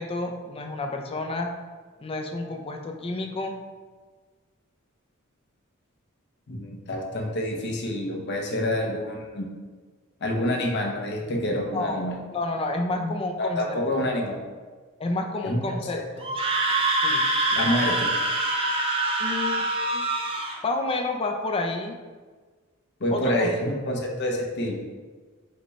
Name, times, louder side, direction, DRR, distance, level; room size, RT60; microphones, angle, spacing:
voice 1, 0.0-1.5 2.0-3.6 11.7-12.0 12.3-14.0 15.0-16.3 17.0-17.2 19.2-19.7 19.9-20.0 20.6-22.0 23.1-23.5, left 2 dB, 25° left, 3 dB, 0.4 m, -30 dB
voice 2, 6.5-9.5 10.2-12.2 13.0-14.4 15.4-16.1 17.5-18.1 23.0-24.8, left 1 dB, 55° left, 0 dB, 0.7 m, -27 dB
Screaming, 16.2-20.6, right 2 dB, 25° right, 0.5 m, -25 dB
5.1 x 2.2 x 4.1 m, 1.4 s
head